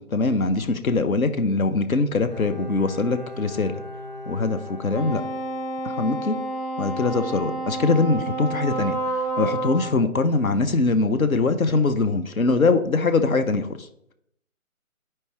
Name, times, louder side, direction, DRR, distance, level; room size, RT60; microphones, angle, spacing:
voice 1, 0.1-3.8 4.3-5.2 5.8-6.4 6.8-13.9, left 3 dB, 70° left, 9 dB, 0.8 m, -22 dB
Bowed string instrument, 2.3-6.0 6.3-6.4, left 1 dB, 30° left, 0.7 m, -39 dB
Wind instrument woodwind instrument, 4.9-9.9, right 2 dB, 15° left, 1.9 m, -29 dB
10.5 x 4.6 x 3.0 m, 0.73 s
figure-of-eight pair, 165°, 43 cm